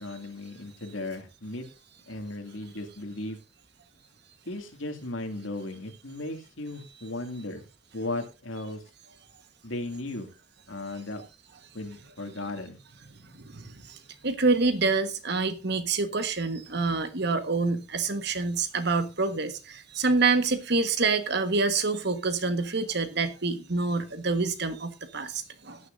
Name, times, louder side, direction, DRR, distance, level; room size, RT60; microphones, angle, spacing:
voice 1, 0.0-1.6 2.1-3.4 4.5-7.6 7.9-8.8 9.6-10.3 10.7-11.2 11.7-12.8, left 2 dB, 90° left, 2.4 m, -36 dB
voice 2, 13.3-14.0 14.2-25.8, right 3 dB, 60° right, 1.4 m, -27 dB
17.5 x 9.8 x 2.6 m
head